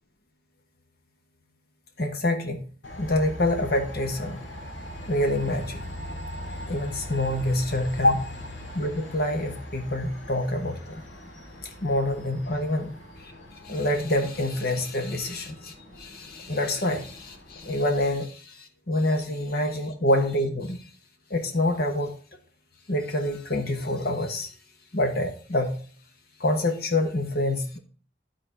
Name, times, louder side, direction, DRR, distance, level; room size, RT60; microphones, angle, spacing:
voice 1, 2.0-2.7 3.0-4.4 5.1-5.8 6.7-8.3 8.7-11.0 11.8-12.9 13.6-20.9 21.3-22.1 22.9-24.5 24.9-25.8 26.4-27.8, left 1 dB, 55° left, 5 dB, 1.3 m, -26 dB
Train, 2.8-18.0, left 1 dB, 80° left, 2.3 m, -41 dB
12.0 x 4.3 x 4.7 m, 0.40 s
head